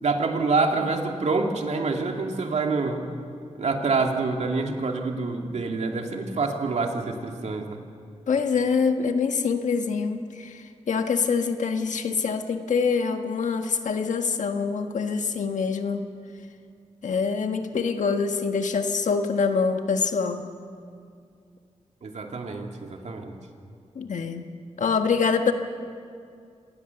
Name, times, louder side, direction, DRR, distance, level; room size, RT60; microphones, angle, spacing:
voice 1, 0.0-3.0 3.6-7.8 22.0-23.3, right 3 dB, 65° right, 2 dB, 2.4 m, -26 dB
voice 2, 8.3-16.0 17.0-20.4 23.9-24.5 24.8-25.5, left 5 dB, 80° left, 6 dB, 1.5 m, -25 dB
26.0 x 18.5 x 7.1 m, 2.3 s
wide cardioid pair, 105°, 12 cm